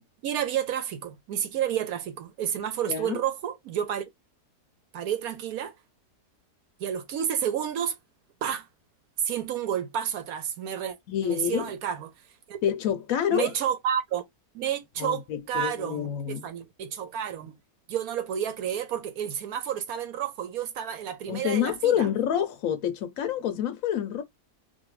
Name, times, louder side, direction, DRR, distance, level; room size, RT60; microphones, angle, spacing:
voice 1, 0.2-4.0 4.9-5.7 6.8-7.9 8.4-8.7 9.2-11.0 11.2-12.1 12.5-12.6 13.3-14.2 14.5-17.5 17.9-22.1, right 9 dB, 70° right, 1.1 m, -30 dB
voice 2, 2.9-3.2 11.1-11.7 12.6-13.5 15.0-16.5 21.3-24.2, left 9 dB, 65° left, 0.9 m, -27 dB
2.6 x 2.6 x 3.1 m
omnidirectional pair, 1.7 m